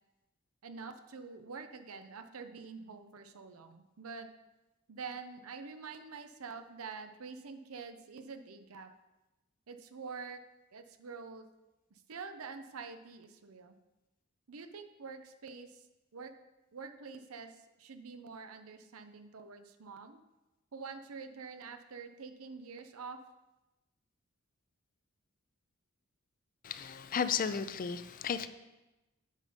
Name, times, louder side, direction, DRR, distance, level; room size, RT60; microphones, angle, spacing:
voice 1, 0.6-4.3 4.9-8.9 9.7-10.4 10.7-11.5 11.9-13.8 14.5-15.8 16.1-16.3 16.7-20.2 20.7-23.2, right 5 dB, 90° right, 8 dB, 0.7 m, -46 dB
voice 2, 26.6-28.5, left 7 dB, 40° left, 12 dB, 0.5 m, -34 dB
9.2 x 5.4 x 5.1 m, 1.0 s
head